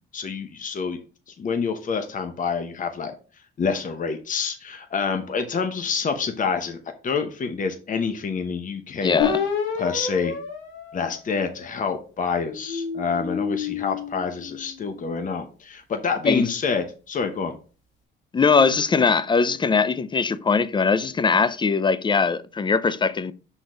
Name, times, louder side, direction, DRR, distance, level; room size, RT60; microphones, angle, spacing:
voice 1, 0.1-1.0 1.3-3.1 3.6-6.8 7.0-9.2 9.7-10.4 10.9-17.6, left 5 dB, 40° left, 0.9 m, -27 dB
voice 2, 9.0-9.4 16.3-16.5 18.3-23.3, left 5 dB, 25° left, 0.5 m, -21 dB
sound 1, 9.2-11.9 12.5-15.0, left 6 dB, 85° left, 1.9 m, -30 dB
6.0 x 4.0 x 5.0 m
cardioid pair, 90°, 20 cm